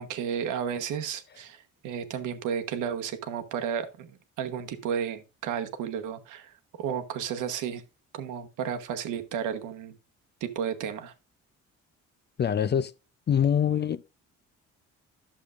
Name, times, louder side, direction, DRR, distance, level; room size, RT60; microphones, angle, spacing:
voice 1, 0.0-7.8 8.1-10.0 10.4-11.1, right 8 dB, 90° right, 1.1 m, -33 dB
voice 2, 12.4-12.9 13.3-14.0, left 8 dB, 35° left, 0.4 m, -24 dB
11.5 x 7.0 x 2.5 m
cardioid pair, 90°, 30 cm